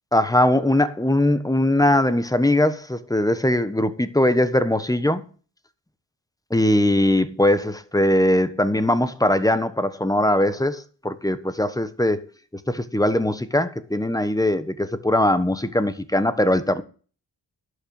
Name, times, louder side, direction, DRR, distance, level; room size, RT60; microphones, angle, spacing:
voice 1, 0.1-5.2 6.5-12.2 12.7-16.8, left 1 dB, 10° left, 1.2 m, -20 dB
11.5 x 6.6 x 6.5 m
cardioid pair, 70°, 42 cm